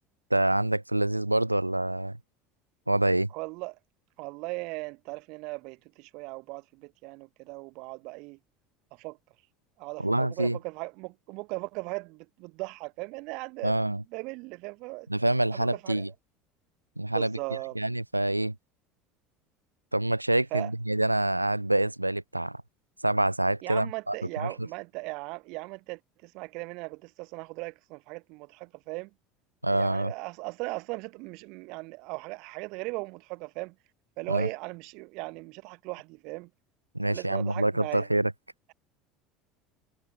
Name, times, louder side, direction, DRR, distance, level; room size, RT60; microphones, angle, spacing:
voice 1, 0.3-2.2 2.9-3.3 10.0-10.6 13.6-14.0 15.1-16.1 17.0-17.4 17.8-18.6 19.9-22.6 23.0-24.5 29.6-30.1 34.3-34.5 36.9-38.3, right 1 dB, 85° right, 0.4 m, -26 dB
voice 2, 3.3-3.8 4.2-8.4 8.9-9.2 9.8-13.8 14.1-15.1 15.5-16.0 17.1-17.8 20.5-20.7 23.6-29.1 29.6-33.8 34.2-36.5 37.0-38.1, right 26 dB, 55° right, 2.5 m, -38 dB
figure-of-eight pair, 70°, 0 cm